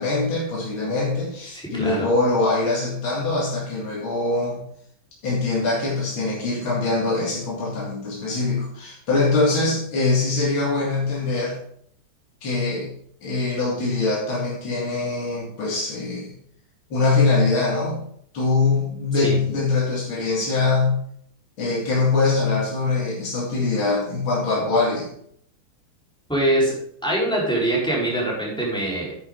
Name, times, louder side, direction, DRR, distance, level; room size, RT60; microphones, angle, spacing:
voice 1, 0.0-4.6 5.2-11.6 12.4-12.9 13.2-16.3 16.9-18.0 18.3-21.0 21.6-25.1, left 3 dB, 75° left, -4 dB, 3.0 m, -23 dB
voice 2, 1.5-2.1 19.1-19.4 26.3-26.8 27.0-29.2, right 1 dB, ahead, -5 dB, 4.2 m, -23 dB
9.9 x 9.7 x 3.8 m, 0.64 s
omnidirectional pair, 2.2 m